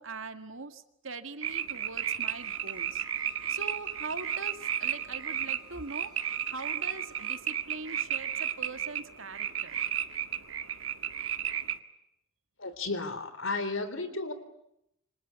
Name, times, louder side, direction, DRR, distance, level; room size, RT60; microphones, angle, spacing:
voice 1, 0.0-9.8, right 3 dB, 75° right, 9 dB, 2.0 m, -42 dB
sound 1, 1.4-11.8, right 9 dB, 90° right, 1.7 m, -33 dB
Bowed string instrument, 2.2-7.4, right 3 dB, ahead, 7.1 m, -55 dB
voice 2, 12.6-14.3, left 3 dB, 75° left, 12 dB, 3.6 m, -33 dB
27.5 x 25.5 x 8.3 m, 0.80 s
head